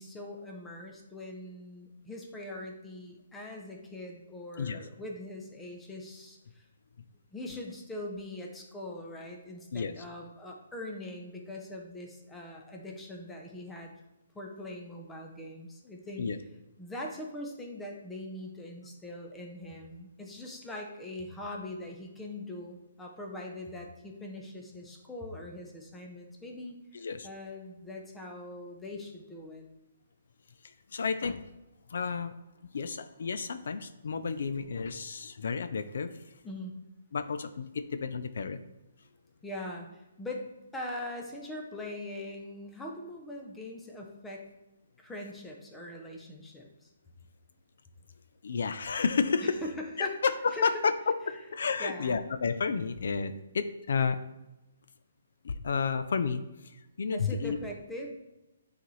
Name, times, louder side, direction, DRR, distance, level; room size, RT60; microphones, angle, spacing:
voice 1, 0.0-6.6 7.3-13.9 14.3-16.3 16.8-26.8 27.2-29.6 36.4-36.7 39.4-40.5 40.7-44.5 45.0-46.9 49.6-50.2 50.5-50.7 51.8-52.2 57.1-58.1, left 1 dB, 5° left, 0 dB, 0.6 m, -42 dB
voice 2, 26.9-27.3 30.6-31.4 31.9-32.4 32.7-36.4 37.1-38.6 48.4-49.6 50.0-54.2 55.4-57.6, left 5 dB, 60° left, 11 dB, 0.4 m, -31 dB
9.3 x 4.0 x 3.1 m, 0.99 s
hypercardioid pair, 175°, 0 cm